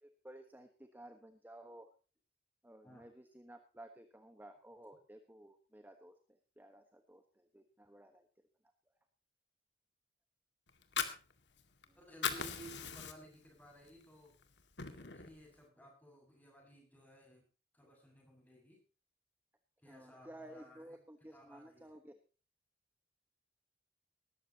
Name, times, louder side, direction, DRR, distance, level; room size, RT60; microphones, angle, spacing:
voice 1, 0.0-1.9 2.6-8.3 11.9-12.0 19.9-22.2, right 1 dB, 10° right, 6 dB, 1.2 m, -55 dB
Fire, 10.7-11.8 12.1-13.5 13.9-14.0 14.4-15.4, left 7 dB, 90° left, 2.0 m, -39 dB
voice 2, 12.0-14.4 14.9-17.4 17.7-18.8 19.8-21.0 21.3-21.9, right 1 dB, 10° left, 1 dB, 6.7 m, -57 dB
19.0 x 13.5 x 2.9 m, 0.36 s
head